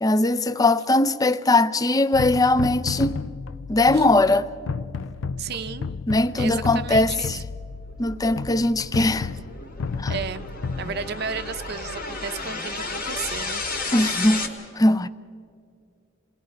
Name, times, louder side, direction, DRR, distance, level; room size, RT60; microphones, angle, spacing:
voice 1, 0.0-3.1 3.7-4.5 6.1-7.4 8.0-9.3 10.0-10.1 13.9-14.4 14.8-15.1, left 2 dB, 20° left, 0.5 m, -20 dB
sound 1, 2.1-12.3, left 4 dB, 75° left, 0.5 m, -33 dB
voice 2, 5.4-5.9 6.4-7.4 10.1-10.5 10.8-13.6, right 6 dB, 55° right, 0.7 m, -33 dB
sound 2, 7.5-14.5, left 3 dB, 45° left, 2.3 m, -33 dB
27.5 x 19.5 x 5.2 m
head